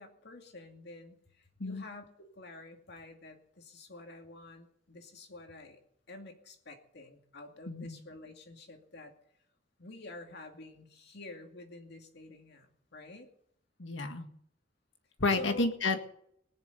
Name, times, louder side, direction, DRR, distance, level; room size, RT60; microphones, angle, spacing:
voice 1, 0.0-5.8 6.1-9.1 9.8-13.3 15.3-15.7, left 2 dB, 60° left, 3 dB, 2.5 m, -48 dB
voice 2, 7.7-8.0 13.8-14.3 15.2-16.1, left 3 dB, 90° left, 7 dB, 1.7 m, -31 dB
20.0 x 7.2 x 8.1 m, 0.71 s
head